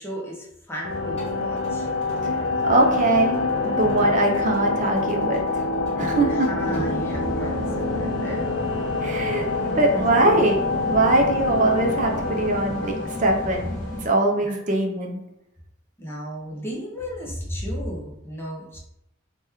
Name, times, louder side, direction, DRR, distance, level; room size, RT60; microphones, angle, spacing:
voice 1, 0.0-1.9 6.3-8.4 9.4-9.5 9.9-10.5 14.4-14.5 16.0-18.8, equal, 10° left, -4 dB, 0.5 m, -34 dB
sound 1, 0.8-14.4, left 3 dB, 80° left, 0.5 m, -26 dB
Ceramic Djembe Jamming Small Room, 1.2-6.8, right 2 dB, 30° left, 1.1 m, -42 dB
voice 2, 2.6-3.4 3.6-5.6 6.0-6.5 9.0-9.5 9.7-13.7 14.0-15.2, right 2 dB, 35° right, 1 dB, 0.4 m, -22 dB
sound 2, 6.6-14.1, left 1 dB, 20° right, 0.8 m, -35 dB
2.9 x 2.2 x 3.4 m, 0.82 s
head